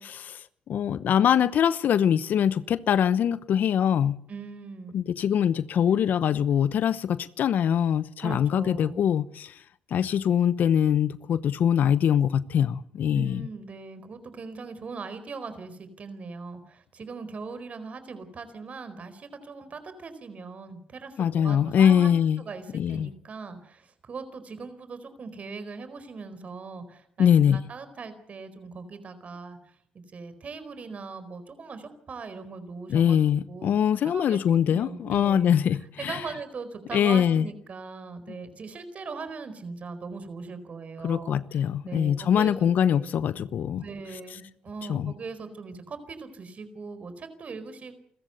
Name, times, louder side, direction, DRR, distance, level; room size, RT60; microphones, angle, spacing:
voice 1, 0.0-4.2 4.9-9.5 9.9-13.4 21.2-22.4 22.7-23.1 27.2-27.6 32.9-36.2 36.9-37.5 41.0-43.8 44.9-45.1, left 9 dB, 65° left, 0.9 m, -23 dB
voice 2, 4.3-5.0 8.2-9.1 13.1-22.1 22.4-29.8 30.1-33.2 33.5-33.8 34.0-34.4 34.7-35.5 36.0-43.1 43.7-48.0, right 4 dB, 50° right, 4.5 m, -40 dB
28.5 x 14.5 x 8.0 m
cardioid pair, 75°, 3 cm